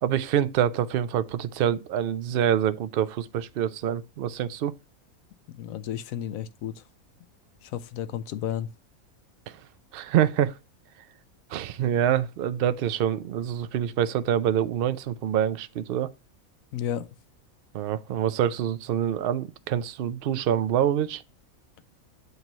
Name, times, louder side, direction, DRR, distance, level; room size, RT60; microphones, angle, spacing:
voice 1, 0.0-4.7 9.9-10.5 11.5-16.1 17.7-21.2, right 10 dB, 65° right, 0.5 m, -26 dB
voice 2, 5.5-6.8 7.6-8.7 16.7-17.1, left 10 dB, 75° left, 1.0 m, -32 dB
8.1 x 3.0 x 5.3 m
omnidirectional pair, 1.5 m